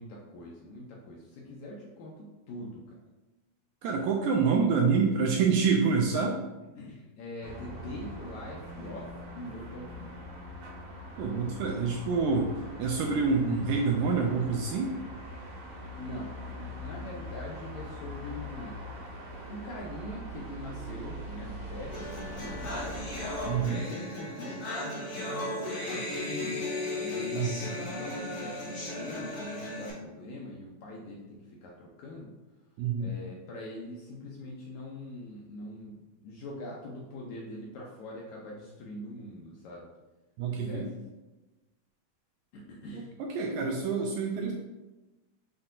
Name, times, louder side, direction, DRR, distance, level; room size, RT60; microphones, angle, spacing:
voice 1, 0.0-3.0 6.8-10.2 16.0-18.8 19.5-23.1 23.5-32.3 33.0-39.9 40.5-40.9 42.5-43.1, left 1 dB, 75° left, -3 dB, 1.7 m, -43 dB
voice 2, 3.8-6.4 11.2-12.5 12.8-14.9 23.5-23.8 27.3-27.6 32.8-33.1 40.4-40.9 42.9-44.5, right 5 dB, 85° right, 0 dB, 1.7 m, -27 dB
sound 1, 7.4-23.7, equal, 65° right, 2.8 m, -42 dB
sound 2, 21.9-29.9, left 1 dB, 45° left, 2.2 m, -35 dB
7.5 x 2.8 x 2.5 m, 1.1 s
omnidirectional pair, 3.9 m